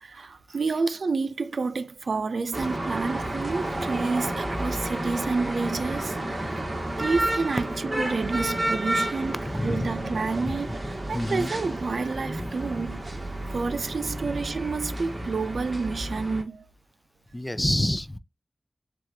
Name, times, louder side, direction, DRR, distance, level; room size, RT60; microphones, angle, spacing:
voice 1, 0.0-6.6 7.0-9.3 9.6-13.1 13.5-16.7, right 4 dB, 75° right, 0.4 m, -29 dB
sound 1, 2.5-16.4, right 1 dB, 35° right, 1.6 m, -31 dB
voice 2, 9.4-9.9 10.5-10.8 11.1-11.5 13.5-13.6 14.2-14.3 17.3-18.2, left 1 dB, 15° left, 0.5 m, -28 dB
7.5 x 2.5 x 2.7 m
wide cardioid pair, 95°, 0 cm